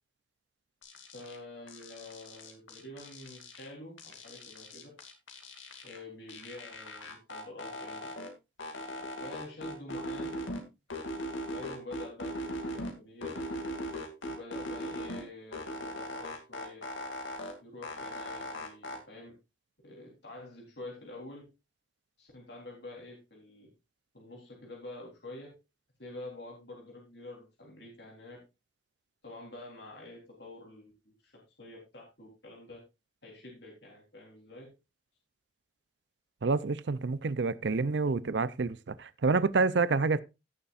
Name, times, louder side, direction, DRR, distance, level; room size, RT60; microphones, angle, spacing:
sound 1, 0.8-1.4 1.7-3.7 4.0-6.0 6.3-8.3 8.6-10.6 10.9-12.9 13.2-15.2 15.5-17.5 17.8-19.0, equal, 90° left, 2.5 m, -39 dB
voice 1, 1.1-4.9 5.8-8.0 9.2-10.3 11.5-13.3 14.3-16.8 17.6-19.3 19.8-21.4 22.2-23.7 24.1-25.5 26.0-28.4 29.2-31.3 31.6-32.8 33.2-34.7, left 2 dB, 60° left, 3.7 m, -47 dB
voice 2, 36.4-40.2, right 4 dB, 65° right, 0.5 m, -28 dB
16.5 x 6.9 x 2.5 m
head